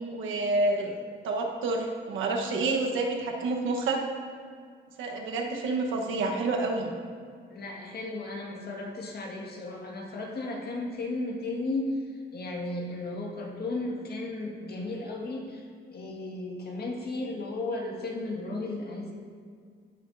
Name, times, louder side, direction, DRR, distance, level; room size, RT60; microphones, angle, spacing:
voice 1, 0.1-1.0 1.2-4.0 5.0-6.9, right 2 dB, 80° right, 1 dB, 1.2 m, -28 dB
voice 2, 7.5-11.9 12.3-19.1, left 2 dB, 50° left, -1 dB, 1.8 m, -35 dB
15.0 x 6.1 x 2.7 m, 2.1 s
cardioid pair, 90°, 20 cm